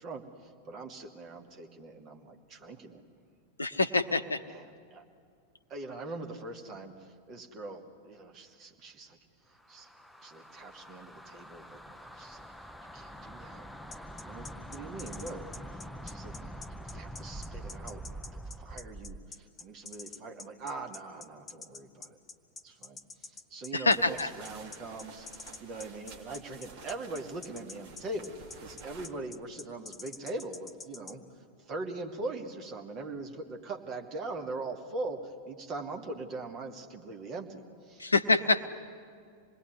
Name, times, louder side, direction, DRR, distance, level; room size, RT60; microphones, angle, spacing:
voice 1, 0.0-3.0 4.5-5.0 5.7-9.2 9.7-9.9 10.2-12.5 12.9-13.7 14.2-15.8 16.0-16.5 16.8-18.0 18.3-22.2 22.6-31.2 31.6-38.1, right 2 dB, 35° right, 4 dB, 2.7 m, -42 dB
voice 2, 3.6-4.4 23.7-24.3 38.0-38.7, left 3 dB, 80° left, 11 dB, 0.9 m, -26 dB
sound 1, 9.6-19.3, right 1 dB, ahead, 0.8 m, -45 dB
sound 2, 13.9-31.1, left 4 dB, 20° left, 1.9 m, -46 dB
sound 3, 23.9-29.1, right 5 dB, 50° right, 2.8 m, -51 dB
27.0 x 20.5 x 9.8 m, 2.2 s
figure-of-eight pair, 90°, 0 cm